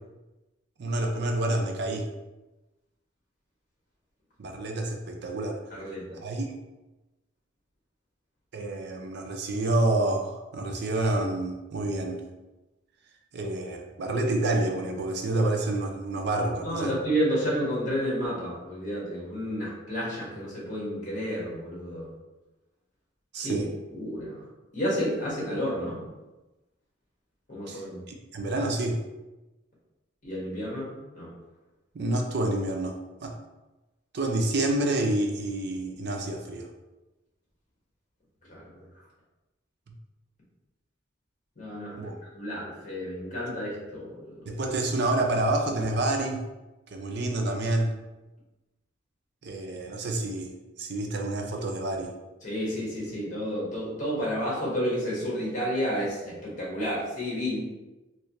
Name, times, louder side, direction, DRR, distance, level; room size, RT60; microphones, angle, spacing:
voice 1, 0.8-2.1 4.4-5.6 6.1-6.5 8.5-12.2 13.3-16.9 23.3-23.7 27.7-29.0 31.9-33.4 34.1-36.7 42.0-42.2 44.5-46.4 46.9-47.9 49.4-50.5 50.8-52.1, right 2 dB, 60° right, 3 dB, 0.4 m, -28 dB
voice 2, 5.7-6.2 16.6-22.1 23.4-24.4 24.7-26.0 27.5-28.0 30.2-31.3 38.5-38.8 41.6-44.4 52.4-57.6, equal, 45° left, -6 dB, 1.4 m, -31 dB
3.1 x 3.0 x 2.9 m, 1.1 s
head